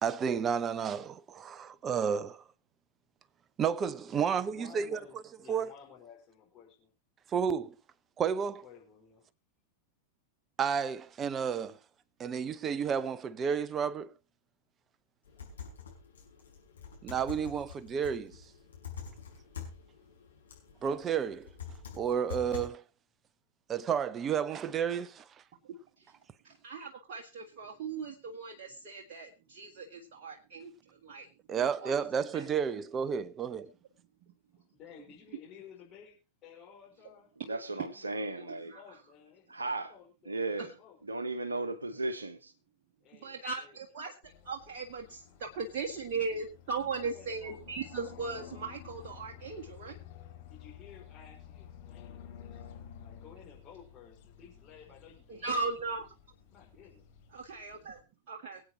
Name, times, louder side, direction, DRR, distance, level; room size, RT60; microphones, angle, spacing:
voice 1, 0.0-2.4 3.6-5.0 5.5-5.7 7.3-7.7 8.2-8.6 10.6-11.8 12.2-14.1 17.0-18.4 20.8-21.5 22.0-22.8 23.7-25.3 31.5-33.7, right 7 dB, 25° right, 0.8 m, -31 dB
voice 2, 4.1-6.9 8.5-9.3 34.5-37.3 37.6-41.0 43.0-43.8 47.0-47.8 50.5-55.7 56.5-57.1, left 7 dB, 30° left, 4.7 m, -55 dB
sound 1, 15.2-22.7, left 7 dB, 70° left, 5.1 m, -46 dB
voice 3, 26.4-30.7 31.0-31.9 32.3-32.4 38.7-38.8 40.6-40.7 43.2-50.0 55.3-56.1 57.3-58.0 58.3-58.6, right 4 dB, 45° right, 1.8 m, -38 dB
voice 4, 37.4-38.7 39.5-39.9 40.3-40.7 41.0-42.5, right 2 dB, 75° right, 1.1 m, -35 dB
sound 2, 44.2-58.0, left 10 dB, 50° left, 3.3 m, -52 dB
24.5 x 8.6 x 2.9 m
figure-of-eight pair, 90°, 0 cm